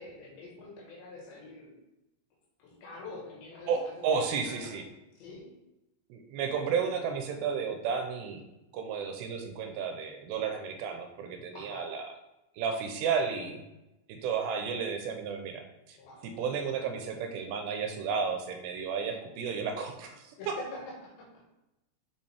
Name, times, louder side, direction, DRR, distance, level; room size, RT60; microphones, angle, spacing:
voice 1, 0.0-1.8 2.6-4.8 5.2-5.4 11.5-11.8 15.9-16.3 20.4-21.4, left 2 dB, 90° left, -1 dB, 3.9 m, -46 dB
voice 2, 3.7-4.8 6.1-8.4 8.7-12.0 12.6-13.6 14.1-16.0 16.2-20.6, right 6 dB, 85° right, 4 dB, 2.9 m, -32 dB
7.4 x 5.3 x 3.5 m, 0.95 s
omnidirectional pair, 4.9 m